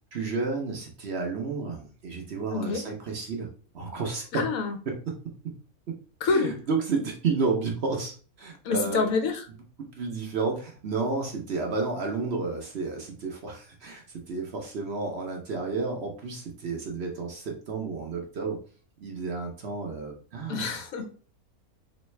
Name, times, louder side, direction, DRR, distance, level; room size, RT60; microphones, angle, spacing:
voice 1, 0.1-3.5 3.7-4.4 4.9-5.2 6.3-9.1 10.0-18.6 19.0-20.7, right 4 dB, 55° right, 1 dB, 0.9 m, -31 dB
voice 2, 2.5-2.8 4.3-4.8 6.2-6.6 8.6-9.4 20.5-21.1, left 4 dB, 70° left, 6 dB, 1.1 m, -27 dB
3.5 x 3.1 x 3.2 m, 0.39 s
omnidirectional pair, 1.6 m